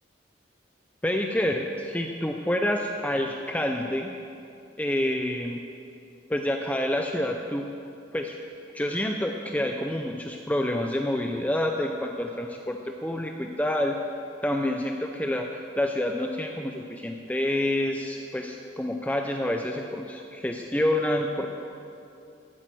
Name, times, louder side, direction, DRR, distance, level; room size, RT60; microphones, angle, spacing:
voice 1, 1.0-4.1 4.8-5.6 6.3-7.6 8.1-8.3 8.7-14.0 14.4-15.5 15.8-21.5, left 1 dB, 10° left, 3 dB, 0.5 m, -28 dB
13.0 x 8.7 x 7.7 m, 2.6 s
head